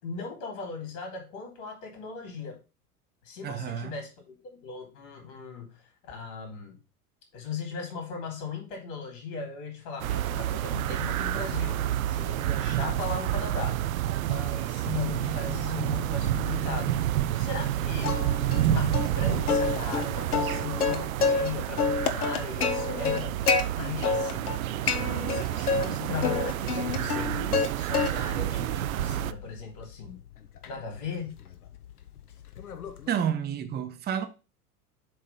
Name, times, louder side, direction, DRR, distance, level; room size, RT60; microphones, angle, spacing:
voice 1, 0.0-2.6 3.2-6.8 7.3-13.8 14.2-17.0 17.4-30.2 30.7-31.3, left 5 dB, 55° left, 3.3 m, -38 dB
voice 2, 3.4-3.9 33.1-34.3, right 8 dB, 20° right, 0.8 m, -30 dB
sound 1, 10.0-29.3, right 13 dB, 65° right, 0.5 m, -29 dB
sound 2, 15.1-19.0, left 11 dB, 35° left, 2.0 m, -43 dB
Plucked string instrument, 18.0-18.7 18.9-19.1 19.5-21.5 21.8-23.6 24.0-24.6 24.9-25.9 26.2-27.7 27.9-28.4 28.9-33.1, left 5 dB, 75° left, 0.9 m, -28 dB
7.7 x 3.3 x 5.3 m
figure-of-eight pair, 80°, 45 cm